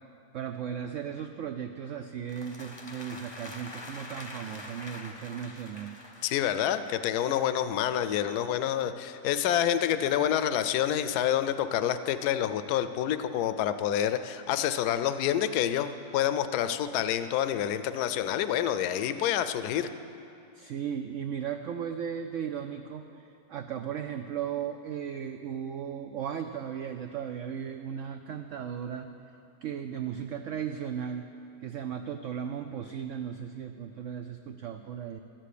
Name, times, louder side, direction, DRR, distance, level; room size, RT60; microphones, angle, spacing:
voice 1, 0.3-5.9 20.5-29.1 29.6-31.3 31.6-35.2, right 8 dB, 85° right, 7 dB, 0.6 m, -36 dB
sound 1, 2.3-7.1, left 2 dB, 25° left, 0.6 m, -45 dB
voice 2, 6.2-19.9, left 10 dB, 70° left, 11 dB, 1.0 m, -28 dB
12.5 x 7.6 x 8.4 m, 2.7 s
omnidirectional pair, 1.9 m